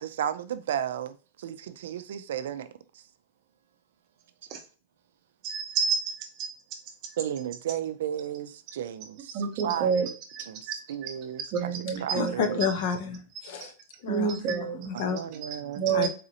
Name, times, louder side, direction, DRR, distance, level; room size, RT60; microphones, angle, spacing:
voice 1, 0.0-2.7 2.9-3.0 7.2-10.1 10.5-12.6 14.3-14.4 14.9-15.9, right 10 dB, 70° right, 0.4 m, -34 dB
voice 2, 5.4-6.5 7.0-7.1 9.3-10.7 11.0-11.1 11.5-12.7 14.1-15.0 15.8-16.1, right 6 dB, 30° right, 0.7 m, -29 dB
voice 3, 12.1-13.7 14.0-15.2 15.9-16.1, left 6 dB, 45° left, 0.7 m, -30 dB
4.0 x 2.6 x 2.8 m
supercardioid pair, 180°, 0 cm